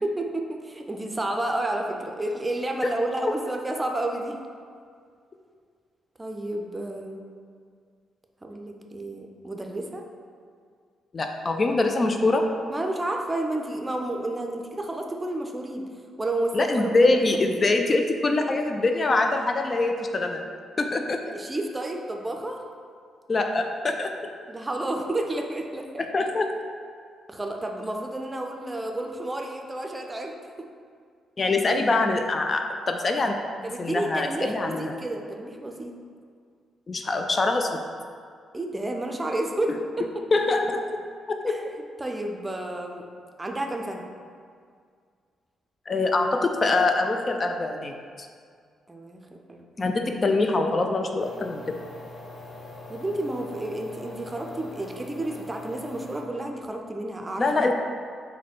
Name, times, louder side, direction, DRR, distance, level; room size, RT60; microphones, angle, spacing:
voice 1, 0.0-4.4 6.2-7.2 8.4-10.0 12.7-15.9 16.2-17.2 21.2-22.6 24.5-26.0 27.3-30.3 33.6-35.9 38.5-40.0 41.5-41.6 42.0-43.0 43.4-44.0 48.9-49.9 52.9-57.7, right 1 dB, 20° right, 2 dB, 0.5 m, -31 dB
voice 2, 11.1-12.4 16.5-20.4 20.8-21.2 23.3-24.1 26.0-26.5 31.4-33.4 33.8-35.0 36.9-37.7 40.3-40.8 41.4-41.5 45.9-48.3 49.8-51.6 57.4-57.7, left 2 dB, 40° left, 4 dB, 0.3 m, -24 dB
sound 1, 51.2-56.2, left 2 dB, 60° left, 0.9 m, -43 dB
3.9 x 2.2 x 4.3 m, 2.1 s
hypercardioid pair, 40°, 0 cm